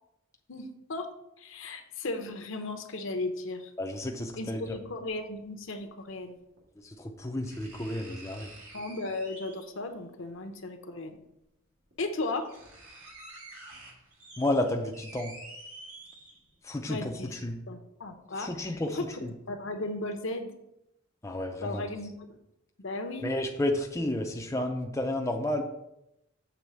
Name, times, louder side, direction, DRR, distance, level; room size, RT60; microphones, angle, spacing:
voice 1, 0.5-1.1 1.4-3.7 4.4-6.4 8.7-11.2 12.0-12.5 16.9-17.3 17.7-19.1 19.5-20.5 21.6-22.4 22.8-23.3, left 2 dB, 65° left, 6 dB, 0.8 m, -36 dB
voice 2, 3.8-4.8 6.8-8.5 14.4-15.3 16.6-17.6 18.4-19.3 21.2-21.8 23.2-25.6, left 1 dB, 15° left, 2 dB, 0.5 m, -31 dB
sound 1, 5.0-5.1 6.6-6.7 7.4-9.8 11.2-11.3 11.9-12.0 12.2-16.7 17.1-17.2, right 2 dB, 80° right, 2.2 m, -49 dB
7.0 x 3.6 x 6.1 m, 0.85 s
head